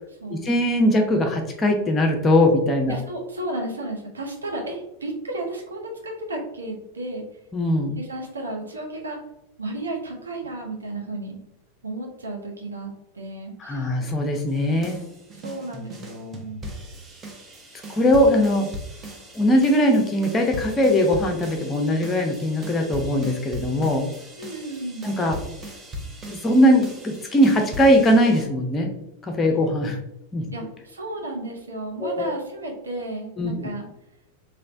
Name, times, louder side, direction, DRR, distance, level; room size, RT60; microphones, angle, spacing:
voice 1, 0.3-3.0 7.5-7.9 13.6-15.0 17.9-18.7 19.3-24.0 25.0-25.4 26.3-28.9 29.4-30.0 30.3-30.5 32.0-32.3 33.4-33.7, equal, 20° left, 3 dB, 0.7 m, -20 dB
voice 2, 2.9-7.2 7.9-9.2 9.6-11.4 11.8-13.9 15.3-16.6 24.4-25.1 30.5-33.9, right 2 dB, 75° right, 1 dB, 0.7 m, -33 dB
sound 1, 14.5-28.5, equal, 20° right, 0.6 m, -39 dB
3.2 x 3.0 x 2.5 m, 0.83 s
figure-of-eight pair, 90°, 0 cm